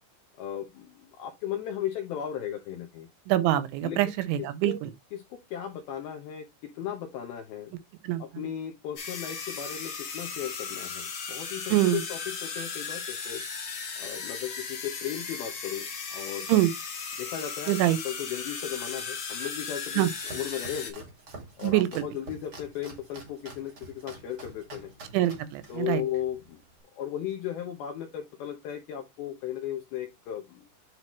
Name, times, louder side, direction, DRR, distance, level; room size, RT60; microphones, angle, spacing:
voice 1, 0.4-3.1 3.8-4.0 4.4-4.8 5.1-7.7 8.2-13.4 14.0-16.6 17.2-20.1 20.3-21.0 21.6-24.9 25.7-26.6 26.9-30.7, left 10 dB, 80° left, 2.2 m, -36 dB
voice 2, 3.3-4.9 8.0-8.2 11.7-12.0 16.5-16.7 17.7-18.0 20.0-20.1 21.6-22.0 25.1-26.0, right 15 dB, 80° right, 3.0 m, -24 dB
sound 1, 9.0-20.9, left 5 dB, 55° left, 1.4 m, -36 dB
Domestic sounds home sounds, 19.9-26.8, right 3 dB, 60° right, 1.0 m, -47 dB
10.0 x 3.7 x 3.0 m
omnidirectional pair, 5.5 m